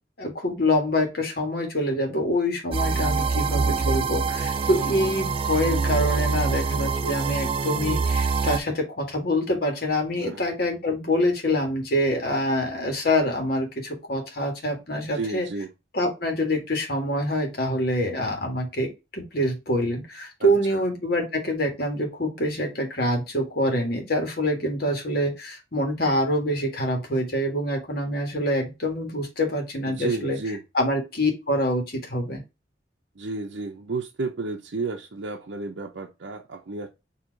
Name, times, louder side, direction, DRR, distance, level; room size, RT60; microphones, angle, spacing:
voice 1, 0.2-15.5 15.9-30.4 30.7-32.4, left 1 dB, 55° left, 1.6 m, -25 dB
sound 1, 2.7-8.6, right 4 dB, 30° right, 0.3 m, -25 dB
voice 2, 15.1-15.7 20.4-20.8 29.9-30.6 33.2-36.9, right 3 dB, 70° right, 0.6 m, -32 dB
4.5 x 2.9 x 3.8 m
head